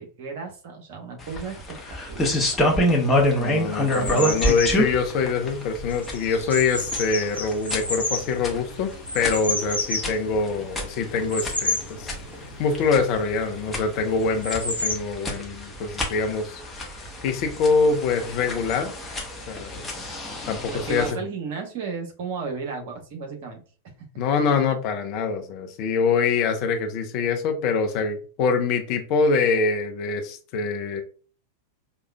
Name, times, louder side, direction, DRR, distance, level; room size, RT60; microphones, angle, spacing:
voice 1, 0.0-2.9 20.7-24.1, right 5 dB, 50° right, 3 dB, 1.0 m, -35 dB
sound 1, 1.2-21.1, left 1 dB, 15° left, 0.9 m, -28 dB
voice 2, 3.4-12.1 12.6-16.6 17.2-18.9 19.5-19.9 20.5-21.2 24.2-31.0, left 4 dB, 45° left, 6 dB, 0.6 m, -24 dB
sound 2, 3.5-15.0, left 2 dB, 90° left, 1.1 m, -32 dB
4.8 x 2.4 x 2.2 m, 0.39 s
figure-of-eight pair, 90°, 0 cm